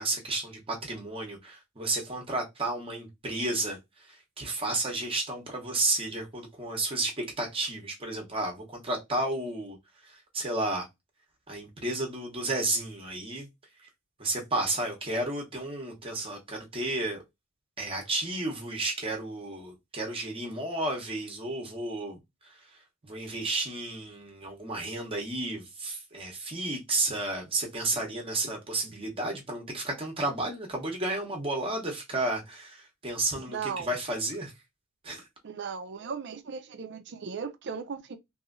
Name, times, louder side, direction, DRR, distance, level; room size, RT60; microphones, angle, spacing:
voice 1, 0.0-9.8 10.0-10.8 11.5-13.5 14.2-17.2 17.8-34.5 35.0-35.2, right 2 dB, 25° right, 0.8 m, -32 dB
voice 2, 33.5-33.9 35.4-38.2, right 6 dB, 60° right, 0.5 m, -37 dB
3.0 x 2.7 x 2.5 m
head